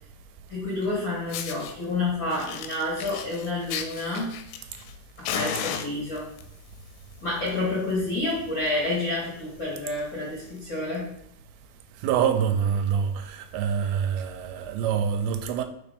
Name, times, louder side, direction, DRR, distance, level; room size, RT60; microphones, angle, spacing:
voice 1, 0.5-4.4 5.2-6.3 7.2-11.1, left 2 dB, 55° left, 1.3 m, -29 dB
Fire, 0.8-0.9 1.3-1.7 2.3-4.9 5.2-6.4 7.2-7.5 7.8-7.9 8.3-8.4 8.6-8.9 9.4-9.5 10.4-10.5, left 9 dB, 80° left, 2.2 m, -34 dB
voice 2, 12.0-15.6, right 7 dB, 85° right, 2.4 m, -25 dB
4.9 x 4.2 x 5.1 m
omnidirectional pair, 4.4 m